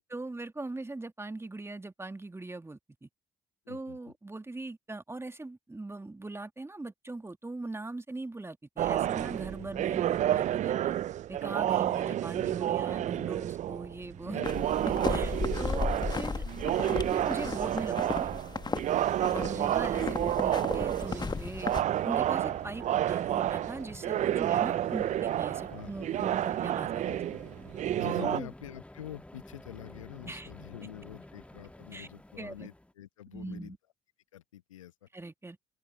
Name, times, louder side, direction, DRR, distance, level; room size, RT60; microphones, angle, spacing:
voice 1, 0.0-3.1 3.7-11.0 11.3-14.4 15.1-16.4 17.1-18.3 19.3-21.7 22.0-27.0 28.2-28.5 30.2-30.5 31.9-32.1 32.4-32.7 33.3-33.8 35.1-35.6, right 2 dB, 15° right, 2.2 m, -40 dB
voice 2, 3.7-4.0 9.6-9.7 14.2-14.6 15.5-15.6 19.4-19.7 25.7-25.9 27.0-27.4 28.0-33.8 34.3-34.9, left 12 dB, 80° left, 1.1 m, -46 dB
sound 1, 8.8-28.4, right 12 dB, 50° right, 0.5 m, -30 dB
sound 2, 14.4-21.8, left 4 dB, 25° left, 1.5 m, -35 dB
sound 3, 20.6-32.9, left 1 dB, 10° left, 1.6 m, -50 dB
open air
figure-of-eight pair, 45°, 16 cm